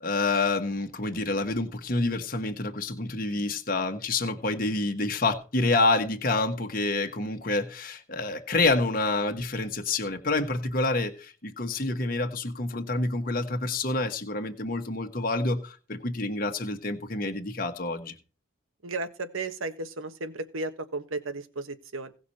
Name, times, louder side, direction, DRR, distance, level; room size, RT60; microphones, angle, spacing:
voice 1, 0.0-18.1, left 2 dB, 45° left, 5 dB, 1.3 m, -28 dB
voice 2, 18.8-22.1, right 3 dB, 85° right, 9 dB, 1.4 m, -34 dB
17.5 x 5.9 x 4.3 m, 0.36 s
head